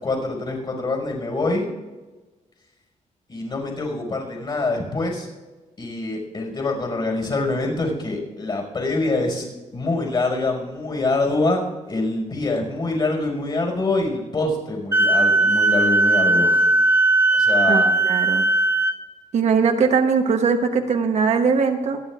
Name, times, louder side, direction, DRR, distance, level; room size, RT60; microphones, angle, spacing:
voice 1, 0.0-1.7 3.3-5.3 5.8-9.5 9.7-16.7 17.3-18.0, left 2 dB, 40° left, 0 dB, 5.2 m, -25 dB
Wind instrument woodwind instrument, 14.9-19.0, right 2 dB, 20° right, 0.9 m, -18 dB
voice 2, 17.7-18.4 19.3-22.0, right 5 dB, 60° right, 5 dB, 1.0 m, -20 dB
26.5 x 10.5 x 2.5 m, 1.2 s
wide cardioid pair, 160°, 13 cm